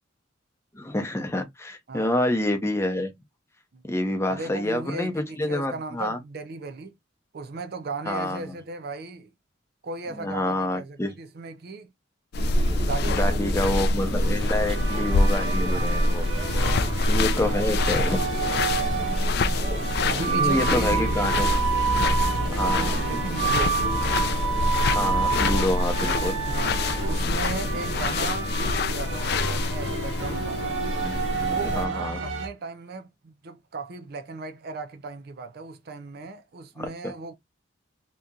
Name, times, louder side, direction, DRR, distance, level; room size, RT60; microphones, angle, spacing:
voice 1, 0.7-3.1 3.8-6.2 8.1-8.5 10.1-11.2 13.1-16.2 17.1-18.2 20.3-21.6 22.0-22.2 22.5-23.0 24.9-26.4 31.6-32.2 36.8-37.1, left 1 dB, 15° left, 0.7 m, -28 dB
voice 2, 4.3-6.9 7.3-9.3 9.8-11.9 12.8-13.4 15.7-16.0 16.6-17.0 18.7-19.0 20.1-21.6 22.3-23.8 26.4-26.8 27.1-30.7 31.4-37.3, right 3 dB, 55° right, 0.5 m, -36 dB
sound 1, 12.3-31.9, left 2 dB, 55° left, 0.3 m, -26 dB
sound 2, 12.4-28.1, equal, 25° right, 1.0 m, -34 dB
sound 3, 14.2-32.5, right 5 dB, 85° right, 1.2 m, -29 dB
2.9 x 2.5 x 3.6 m
head